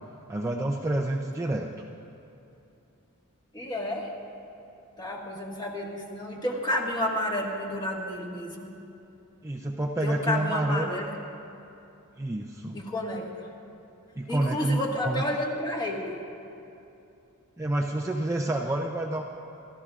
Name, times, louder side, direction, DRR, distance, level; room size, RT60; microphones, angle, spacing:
voice 1, 0.3-1.7 9.4-11.0 12.2-12.8 14.2-14.8 15.1-15.2 17.6-19.2, right 1 dB, 15° right, -1 dB, 0.5 m, -28 dB
voice 2, 3.5-4.2 5.0-8.8 10.0-11.1 12.7-13.5 14.3-16.2, left 1 dB, 20° left, -2 dB, 1.7 m, -31 dB
28.0 x 13.5 x 2.5 m, 2.8 s
head